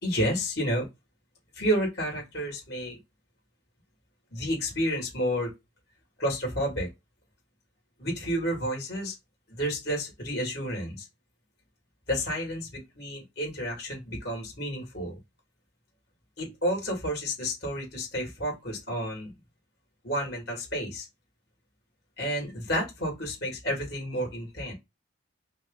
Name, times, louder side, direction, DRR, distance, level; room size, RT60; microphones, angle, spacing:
voice 1, 0.0-0.9 1.5-3.0 4.3-5.5 6.2-6.9 8.0-9.1 9.5-11.1 12.1-15.2 16.4-19.3 20.0-21.1 22.2-24.7, equal, 55° left, 2.3 m, -30 dB
5.3 x 2.0 x 3.7 m
head